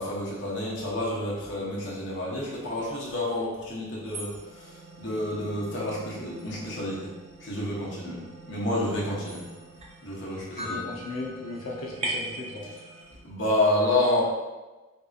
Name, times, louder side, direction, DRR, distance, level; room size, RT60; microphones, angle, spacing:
voice 1, 0.0-7.1 7.4-9.5 10.0-10.8 13.2-14.2, left 1 dB, 60° left, -5 dB, 0.9 m, -29 dB
sound 1, 4.1-13.2, right 1 dB, 30° right, 0.5 m, -40 dB
voice 2, 10.6-12.7, left 2 dB, 85° left, -3 dB, 0.7 m, -36 dB
3.5 x 2.7 x 2.4 m, 1.2 s
head